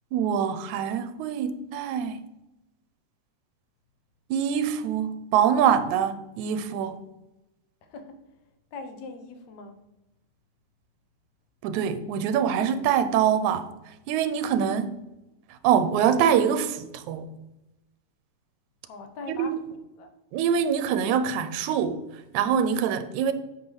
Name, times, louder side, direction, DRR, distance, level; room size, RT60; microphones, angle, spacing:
voice 1, 0.1-2.2 4.3-7.0 11.6-13.7 14.1-14.9 15.5-17.3 19.3-19.6 20.3-23.3, right 8 dB, 90° right, 2.0 m, -24 dB
voice 2, 7.8-8.2 8.7-9.8 18.9-20.1, left 3 dB, 80° left, 2.3 m, -41 dB
8.5 x 6.0 x 3.1 m
omnidirectional pair, 3.3 m